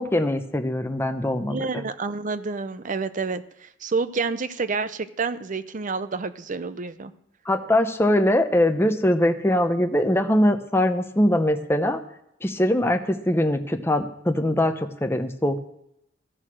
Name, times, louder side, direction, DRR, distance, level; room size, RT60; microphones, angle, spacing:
voice 1, 0.0-1.6 7.5-12.0 12.4-15.6, left 1 dB, 15° left, 6 dB, 0.8 m, -22 dB
voice 2, 1.5-7.1, right 4 dB, 45° right, 13 dB, 0.6 m, -29 dB
14.0 x 6.5 x 6.2 m, 0.81 s
head